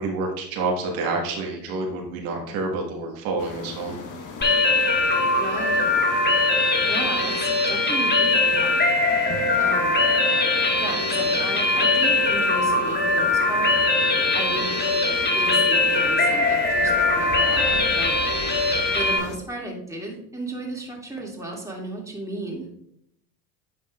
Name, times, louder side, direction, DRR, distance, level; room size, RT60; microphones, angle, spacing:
voice 1, 0.0-4.0, right 3 dB, 80° right, 0 dB, 1.5 m, -28 dB
sound 1, 3.4-19.4, left 5 dB, 45° left, 1.4 m, -37 dB
sound 2, 4.4-19.2, left 2 dB, 25° left, 1.6 m, -21 dB
voice 2, 5.4-5.9 6.9-8.8 9.6-10.0 10.8-13.7 14.3-14.7 15.3-18.2 18.9-22.7, right 1 dB, 5° right, -2 dB, 2.1 m, -34 dB
9.2 x 5.3 x 2.3 m, 0.73 s
supercardioid pair, 80°, 43 cm